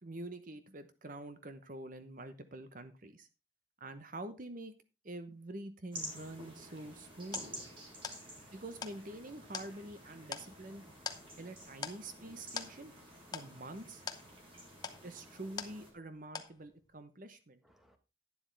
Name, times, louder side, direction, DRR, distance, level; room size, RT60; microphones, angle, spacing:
voice 1, 0.0-3.3 3.8-4.7 5.0-7.5 8.5-10.8 11.4-12.9 13.3-14.0 15.0-17.6, right 2 dB, 40° right, 10 dB, 0.9 m, -46 dB
sound 1, 5.9-15.9, equal, 25° right, 3.5 m, -50 dB
sound 2, 6.6-16.1 16.3-16.9, left 5 dB, 20° left, 0.8 m, -46 dB
voice 2, 7.8-8.5 11.1-11.4 14.3-15.1 17.8-18.0, equal, ahead, 6 dB, 1.3 m, -66 dB
11.5 x 9.8 x 3.4 m, 0.29 s
head